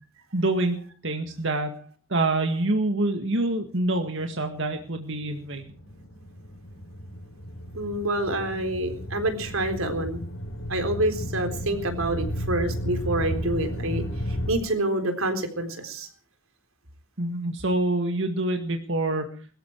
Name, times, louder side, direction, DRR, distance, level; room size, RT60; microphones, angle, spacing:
voice 1, 0.3-0.8 1.0-1.8 2.1-5.6 17.2-19.3, right 2 dB, 60° right, 5 dB, 1.9 m, -26 dB
sound 1, 4.8-14.5, equal, 85° left, 5.6 m, -34 dB
voice 2, 7.7-10.2 10.7-16.1, right 1 dB, 85° right, 7 dB, 3.9 m, -27 dB
22.0 x 14.0 x 4.7 m, 0.42 s
head